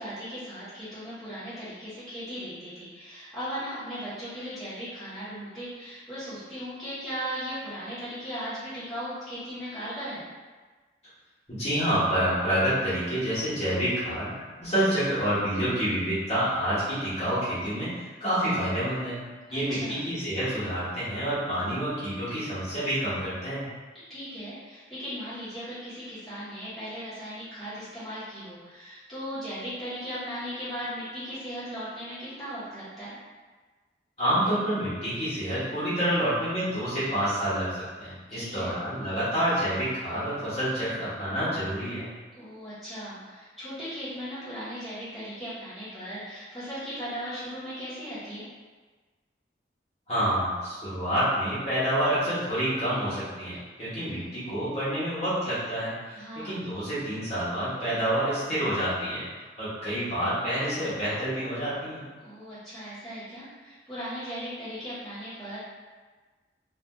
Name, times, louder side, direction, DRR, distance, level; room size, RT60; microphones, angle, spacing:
voice 1, 0.0-10.2 19.5-20.1 24.1-33.1 38.3-38.7 42.3-48.5 54.0-54.4 56.1-56.6 62.2-65.6, equal, ahead, -16 dB, 1.1 m, -37 dB
voice 2, 11.5-14.3 14.6-19.2 19.5-23.7 34.2-42.1 50.1-56.2 56.4-59.2 59.6-62.0, equal, 35° left, -12 dB, 1.2 m, -28 dB
3.3 x 2.5 x 2.3 m, 1.4 s
head